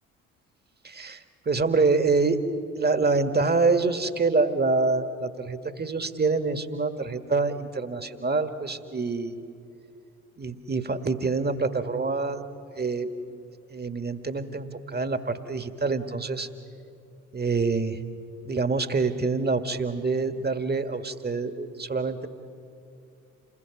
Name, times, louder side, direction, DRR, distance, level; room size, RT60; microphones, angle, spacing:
voice 1, 0.8-2.4 2.8-9.4 10.4-12.4 12.7-13.1 13.7-16.5 17.3-18.0 18.4-22.3, right 4 dB, 25° right, 10 dB, 1.7 m, -26 dB
28.0 x 21.0 x 6.0 m, 2.6 s
figure-of-eight pair, 45°, 41 cm